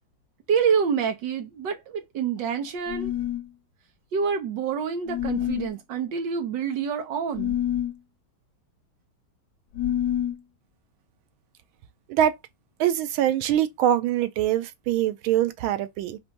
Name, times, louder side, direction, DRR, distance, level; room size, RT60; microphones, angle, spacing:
voice 1, 0.5-3.1 4.1-7.6, right 6 dB, 65° right, 1.6 m, -27 dB
sound 1, 2.9-3.5 5.1-5.7 7.3-8.0 9.7-10.4, left 11 dB, 70° left, 1.4 m, -27 dB
voice 2, 12.8-16.2, right 11 dB, 85° right, 1.5 m, -23 dB
4.4 x 2.6 x 4.4 m
omnidirectional pair, 2.2 m